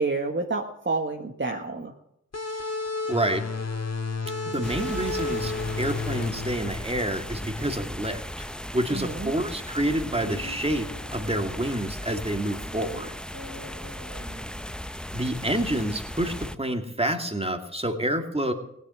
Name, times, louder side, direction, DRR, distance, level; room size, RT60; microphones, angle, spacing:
voice 1, 0.0-1.9 8.9-9.3, right 3 dB, 35° right, 2 dB, 1.7 m, -29 dB
sound 1, 2.3-7.6, left 3 dB, 55° left, 2.0 m, -32 dB
voice 2, 3.1-3.4 4.5-8.5 8.7-10.9 11.1-13.1 15.1-18.5, right 1 dB, 20° right, 5 dB, 2.4 m, -28 dB
sound 2, 4.6-16.6, equal, 5° left, 0.7 m, -37 dB
sound 3, 10.1-11.7 12.3-14.7 15.0-15.1, left 1 dB, 85° right, 2.8 m, -45 dB
17.0 x 9.5 x 7.8 m, 0.78 s
cardioid pair, 45°, 31 cm